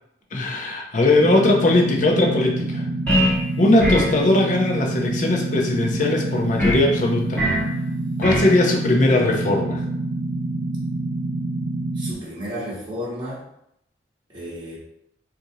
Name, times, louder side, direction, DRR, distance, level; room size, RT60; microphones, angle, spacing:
voice 1, 0.3-2.8 3.6-7.4 8.2-9.8, left 2 dB, 40° left, 1 dB, 0.5 m, -19 dB
sound 1, 1.2-12.1, right 2 dB, 60° right, 0.5 m, -27 dB
sound 2, 3.1-3.4 3.8-4.2 6.6-6.9 7.4-7.7 8.2-8.5, equal, 10° left, 0.9 m, -21 dB
voice 2, 11.9-13.4 14.3-14.8, equal, 25° right, -9 dB, 1.0 m, -32 dB
4.1 x 2.6 x 2.7 m, 0.78 s
head